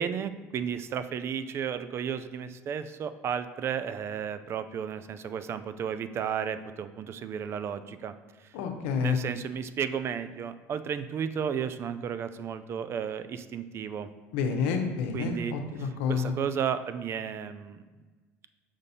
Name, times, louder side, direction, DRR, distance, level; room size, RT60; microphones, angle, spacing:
voice 1, 0.0-8.1 9.0-14.1 15.1-15.5 15.8-17.8, right 7 dB, 45° right, 12 dB, 0.4 m, -33 dB
voice 2, 8.5-9.2 14.3-16.4, left 6 dB, 85° left, 5 dB, 0.9 m, -29 dB
5.3 x 5.2 x 4.1 m, 1.3 s
supercardioid pair, 100°, 6 cm